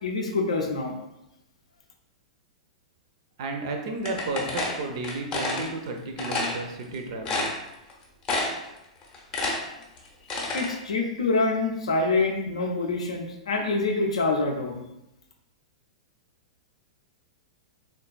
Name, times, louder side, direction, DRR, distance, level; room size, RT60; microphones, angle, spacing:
voice 1, 0.0-1.0 10.5-14.8, left 3 dB, 65° left, 2 dB, 0.5 m, -26 dB
voice 2, 3.4-7.5, right 2 dB, 50° right, 3 dB, 0.4 m, -32 dB
sound 1, 4.0-5.7 6.2-6.6 6.9-7.0 7.2-7.9 8.2-8.7 9.0-10.7, left 2 dB, 25° left, 0.7 m, -28 dB
3.6 x 2.2 x 2.3 m, 0.87 s
figure-of-eight pair, 100°, 4 cm